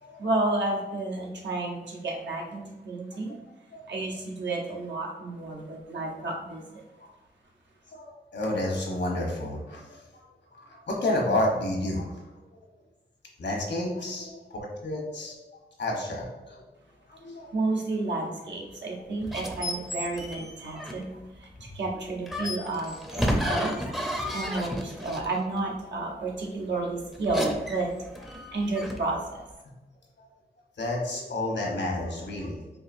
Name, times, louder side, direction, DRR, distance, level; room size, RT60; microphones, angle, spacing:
voice 1, 0.2-3.4 3.9-6.8 17.5-23.7 24.0-27.9 28.3-29.4, right 2 dB, 80° right, -1 dB, 0.9 m, -31 dB
voice 2, 7.9-10.2 10.5-12.1 13.4-15.4 15.8-16.6 17.1-17.6 24.2-24.3 30.8-32.6, left 1 dB, 75° left, -1 dB, 1.0 m, -30 dB
sound 1, 19.2-21.2 22.3-25.4 27.1-29.2, equal, ahead, 0.5 m, -32 dB
4.7 x 2.7 x 2.5 m, 1.1 s
wide cardioid pair, 85°, 18 cm